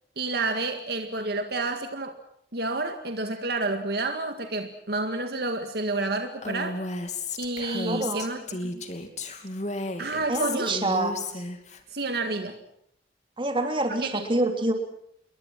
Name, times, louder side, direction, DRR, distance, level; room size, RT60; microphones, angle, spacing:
voice 1, 0.2-2.2 2.5-6.8 7.4-8.7 10.0-10.8 11.9-12.6 14.0-14.2, right 2 dB, 60° right, 6 dB, 1.9 m, -29 dB
Female speech woman speaking, 6.4-11.8, left 2 dB, 40° left, 2.8 m, -33 dB
voice 2, 7.8-8.3 10.3-11.1 13.4-14.7, right 2 dB, 30° right, 5 dB, 3.3 m, -26 dB
29.0 x 22.5 x 6.0 m, 0.73 s
head